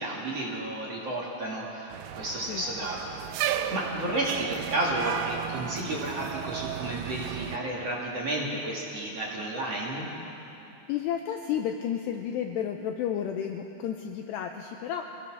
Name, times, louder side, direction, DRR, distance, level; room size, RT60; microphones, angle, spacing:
voice 1, 0.0-3.1 3.4-10.1, right 1 dB, 40° right, -5 dB, 2.5 m, -32 dB
sound 1, 1.9-7.6, right 10 dB, 80° right, 2.6 m, -34 dB
voice 2, 2.5-2.9 10.9-15.2, left 9 dB, 90° left, 4 dB, 2.4 m, -32 dB
24.5 x 17.0 x 6.3 m, 2.9 s
omnidirectional pair, 5.7 m